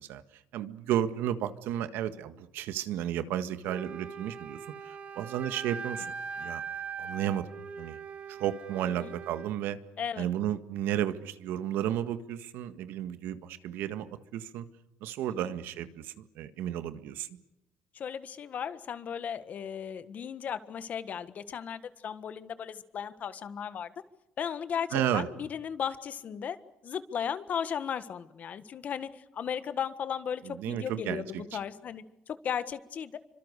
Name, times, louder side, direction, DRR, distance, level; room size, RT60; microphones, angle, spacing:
voice 1, 0.0-6.6 7.0-7.5 7.8-8.0 8.3-9.8 10.2-14.6 15.0-17.3 24.9-25.3 30.4-31.6, right 11 dB, 80° right, 11 dB, 1.7 m, -33 dB
Wind instrument woodwind instrument, 3.6-9.5, right 6 dB, 35° right, 2.1 m, -41 dB
voice 2, 8.8-9.1 10.0-10.3 15.3-15.5 17.9-23.9 24.4-26.6 26.8-33.2, left 8 dB, 45° left, 13 dB, 1.5 m, -36 dB
28.0 x 25.0 x 6.7 m, 0.91 s
cardioid pair, 125°, 4 cm